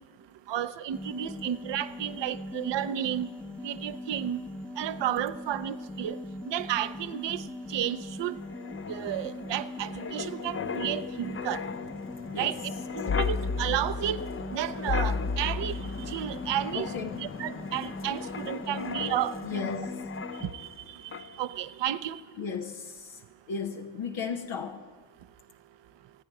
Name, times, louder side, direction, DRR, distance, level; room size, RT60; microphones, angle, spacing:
voice 1, 0.5-3.3 3.6-4.4 4.8-6.2 6.5-7.4 7.7-8.4 8.9-11.6 12.4-14.2 14.5-15.8 16.1-16.9 17.2-19.7 20.4-21.0 21.4-22.2, right 11 dB, 70° right, 14 dB, 0.7 m, -32 dB
sound 1, 0.9-20.5, left 1 dB, 5° left, 0.8 m, -41 dB
Wind, 8.4-20.8 21.1-21.4, left 5 dB, 30° left, 0.5 m, -35 dB
voice 2, 16.7-17.2 18.7-19.1 19.4-20.1 22.4-23.2 23.5-24.9, left 6 dB, 85° left, 2 dB, 1.0 m, -35 dB
27.0 x 9.1 x 4.9 m, 1.5 s
supercardioid pair, 45°, 44 cm